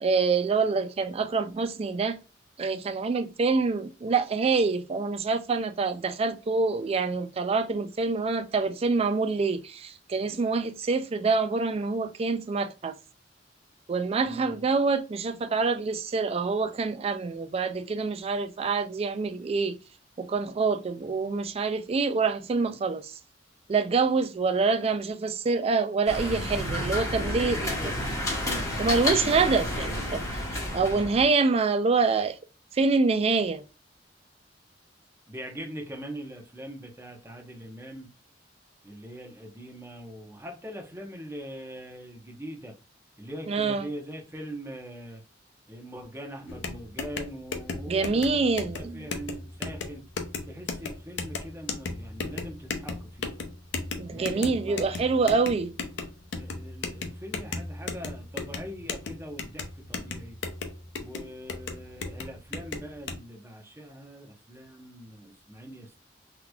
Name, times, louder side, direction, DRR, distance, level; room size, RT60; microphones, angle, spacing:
voice 1, 0.0-2.2 2.6-12.9 13.9-19.8 20.2-23.1 23.7-27.7 28.8-30.4 30.7-32.4 32.7-33.6 43.5-43.9 47.9-49.1 54.0-55.7, right 4 dB, 35° right, 0.3 m, -26 dB
voice 2, 14.2-14.6 26.2-26.4 27.1-28.2 35.3-38.1 38.8-42.7 43.2-45.2 45.7-48.5 48.8-50.0 50.5-53.3 54.1-55.3 56.3-60.4 61.0-66.0, equal, 15° right, 0.9 m, -42 dB
sound 1, 26.1-31.2, left 1 dB, 20° left, 1.2 m, -30 dB
sound 2, 46.5-63.2, left 4 dB, 70° left, 0.6 m, -36 dB
3.8 x 3.0 x 2.3 m
head